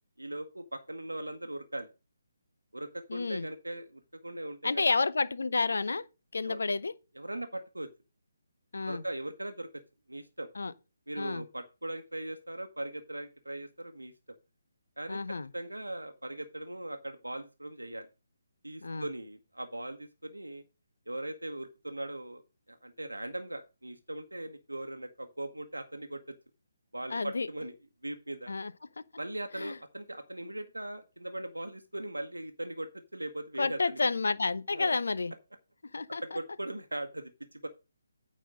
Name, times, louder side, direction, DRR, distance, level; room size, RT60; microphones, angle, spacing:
voice 1, 0.2-1.9 2.7-5.0 6.4-6.6 7.1-7.9 8.9-9.7 10.1-10.5 11.1-14.1 15.0-18.1 18.6-20.6 21.1-22.4 22.7-26.3 26.9-27.7 28.0-28.5 29.2-34.1 34.7-34.9 36.2-37.7, right 1 dB, 90° right, 1.0 m, -39 dB
voice 2, 3.1-3.5 4.6-6.0 6.3-6.9 8.7-9.0 10.6-10.7 11.2-11.4 15.1-15.5 18.8-19.1 27.1-27.5 28.5-28.7 29.5-29.8 33.6-35.3 35.9-36.4, left 3 dB, 70° left, 0.7 m, -30 dB
9.1 x 4.2 x 6.2 m
figure-of-eight pair, 145°, 0 cm